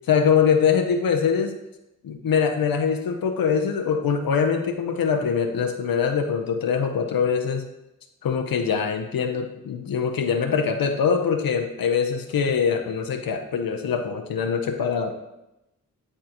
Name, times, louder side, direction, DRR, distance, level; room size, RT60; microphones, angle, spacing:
voice 1, 0.1-1.6 2.0-7.7 8.2-15.1, left 6 dB, 85° left, 5 dB, 0.6 m, -23 dB
9.9 x 3.6 x 2.9 m, 0.91 s
cardioid pair, 45°, 34 cm